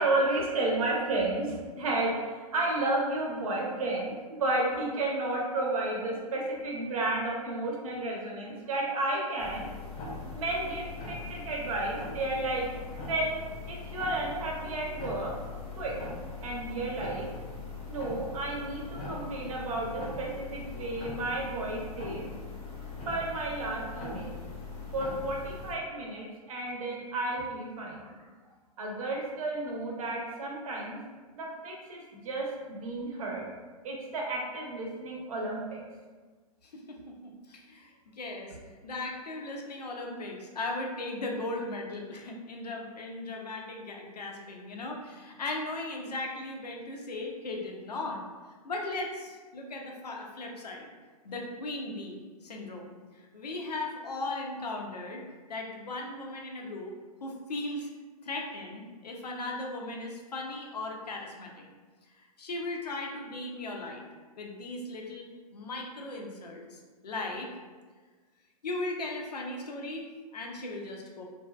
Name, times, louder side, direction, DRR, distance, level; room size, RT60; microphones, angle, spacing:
voice 1, 0.0-10.0 10.3-13.3 13.7-15.3 15.7-16.0 16.4-17.3 17.9-22.2 23.1-24.4 24.9-28.2 28.8-31.0 31.3-33.4 33.8-35.8, right 2 dB, 60° right, -1 dB, 0.7 m, -32 dB
sound 1, 9.4-25.7, left 4 dB, 30° left, 0.6 m, -41 dB
voice 2, 36.6-38.6 38.8-48.2 48.6-50.9 51.2-55.2 55.5-56.9 57.2-57.9 58.2-61.7 62.2-64.0 64.4-67.5 68.6-71.3, left 2 dB, 90° left, 1 dB, 0.5 m, -37 dB
2.6 x 2.3 x 2.2 m, 1.4 s
hypercardioid pair, 130°, 20 cm